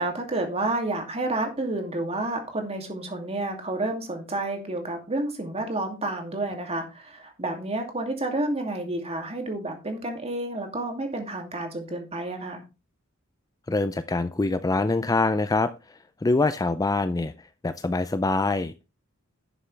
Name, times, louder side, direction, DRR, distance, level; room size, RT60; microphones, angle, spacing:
voice 1, 0.0-12.6, right 2 dB, 30° right, 4 dB, 2.5 m, -30 dB
voice 2, 13.7-15.7 16.2-17.3 17.6-18.9, left 3 dB, 15° left, 12 dB, 0.4 m, -24 dB
11.0 x 7.1 x 3.3 m, 0.27 s
head